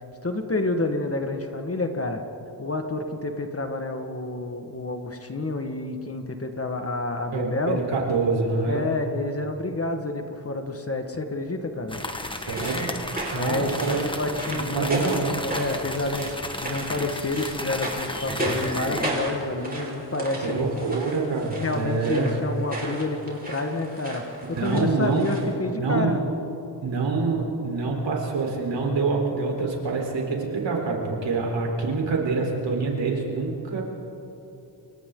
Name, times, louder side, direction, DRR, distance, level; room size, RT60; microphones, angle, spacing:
voice 1, 0.2-2.2 2.6-7.8 8.7-12.0 13.3-21.0 21.6-24.4 24.6-26.2, left 2 dB, 30° left, 5 dB, 1.7 m, -29 dB
voice 2, 7.3-8.8 12.3-12.9 13.3-14.0 14.5-15.3 20.4-22.3 24.5-26.2 26.8-33.8, right 4 dB, 85° right, 0 dB, 4.2 m, -26 dB
sound 1, 11.9-19.1, left 1 dB, 10° left, 1.4 m, -34 dB
sound 2, 12.2-25.5, right 1 dB, 20° right, 5.0 m, -34 dB
29.5 x 24.0 x 3.9 m, 3.0 s
wide cardioid pair, 95°, 43 cm